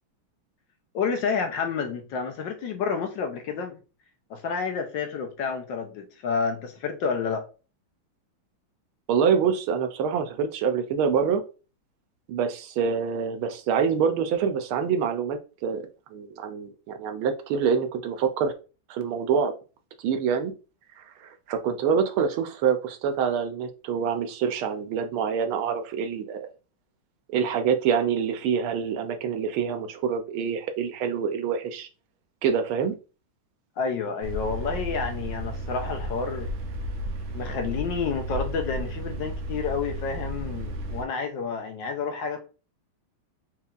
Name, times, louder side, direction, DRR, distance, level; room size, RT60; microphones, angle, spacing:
voice 1, 0.9-3.8 4.3-7.4 33.8-36.5 37.3-42.4, left 5 dB, 70° left, 1.3 m, -29 dB
voice 2, 9.1-11.4 12.3-15.8 16.1-18.5 18.9-19.5 20.0-20.5 21.0-26.5 27.3-31.9 32.4-33.0, right 7 dB, 80° right, 1.5 m, -26 dB
sound 1, 34.2-41.0, right 1 dB, 65° right, 0.9 m, -33 dB
4.4 x 3.6 x 2.4 m
omnidirectional pair, 2.3 m